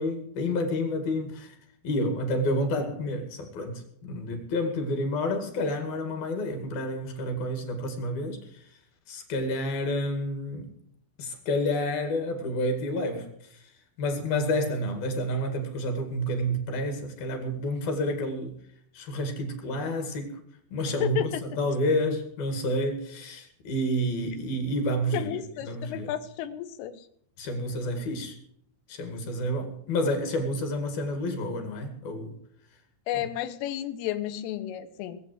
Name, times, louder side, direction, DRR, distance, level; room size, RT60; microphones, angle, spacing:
voice 1, 0.0-1.6 1.8-8.6 9.1-10.7 11.2-13.6 14.0-18.6 18.9-20.4 20.7-26.1 27.4-28.4 28.9-32.4 33.1-33.3, left 1 dB, 55° left, 3.6 m, -29 dB
voice 2, 21.0-21.4 25.1-27.0 33.1-35.2, left 12 dB, 90° left, 3.7 m, -32 dB
20.5 x 8.1 x 7.7 m
omnidirectional pair, 5.6 m